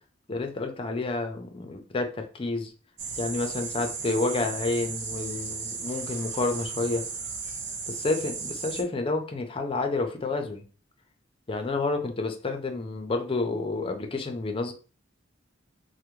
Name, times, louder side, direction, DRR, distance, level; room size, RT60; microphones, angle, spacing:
voice 1, 0.3-2.7 3.2-7.1 7.9-10.6 11.5-14.7, left 3 dB, 30° left, 5 dB, 0.5 m, -29 dB
sound 1, 3.0-8.8, right 5 dB, 65° right, 0.7 m, -35 dB
3.3 x 2.1 x 3.0 m, 0.37 s
head